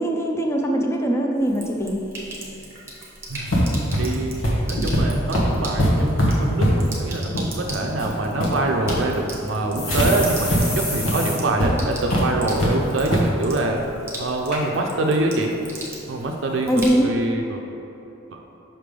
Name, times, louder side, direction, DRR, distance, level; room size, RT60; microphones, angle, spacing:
voice 1, 0.0-2.0 16.7-17.1, right 1 dB, 15° left, 1 dB, 0.5 m, -21 dB
Sink (filling or washing), 1.4-17.3, right 1 dB, 15° right, 0.9 m, -39 dB
sound 1, 3.5-10.1 10.5-10.6 10.9-11.1 11.6-11.7 12.1-12.7 13.1-13.3, equal, 85° left, 1.2 m, -22 dB
voice 2, 4.0-4.3 4.7-13.8 14.2-15.5 16.1-17.6 18.3-18.4, right 2 dB, 65° right, 2 dB, 0.5 m, -25 dB
sound 2, 8.8-8.9 9.2-9.3 9.8-11.4 11.7-11.8 12.1-12.5 12.9-13.2 13.9-14.0 14.5-14.6 15.3-15.4, left 1 dB, 50° left, 1.3 m, -30 dB
5.8 x 3.3 x 5.2 m, 3.0 s
head